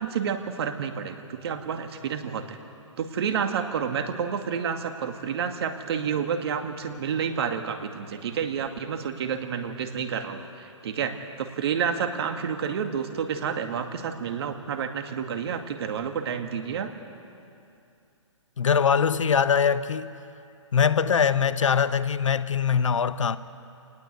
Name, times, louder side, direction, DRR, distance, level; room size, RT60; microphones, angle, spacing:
voice 1, 0.0-2.6 3.0-16.9, right 7 dB, 55° right, 2.2 m, -29 dB
voice 2, 18.6-20.1 20.7-23.4, left 7 dB, 75° left, 1.0 m, -22 dB
27.5 x 19.5 x 8.2 m
hypercardioid pair, 135°, 16 cm